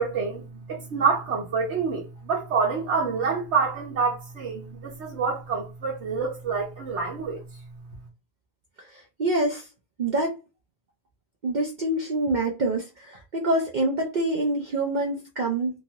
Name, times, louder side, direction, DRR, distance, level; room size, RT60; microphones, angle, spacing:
voice 1, 0.0-7.4, right 5 dB, 85° right, 1.2 m, -27 dB
voice 2, 8.8-9.7 10.0-10.3 11.4-15.8, right 2 dB, 50° right, 0.6 m, -26 dB
2.9 x 2.4 x 2.8 m
omnidirectional pair, 1.1 m